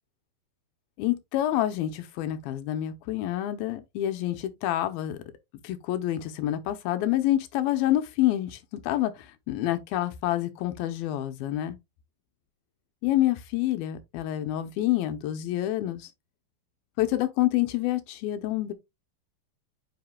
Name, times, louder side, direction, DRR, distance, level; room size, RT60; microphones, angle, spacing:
voice 1, 1.0-5.2 5.6-11.8 13.0-16.1 17.0-18.7, left 14 dB, 80° left, 2.6 m, -27 dB
9.1 x 5.0 x 2.3 m
omnidirectional pair, 4.2 m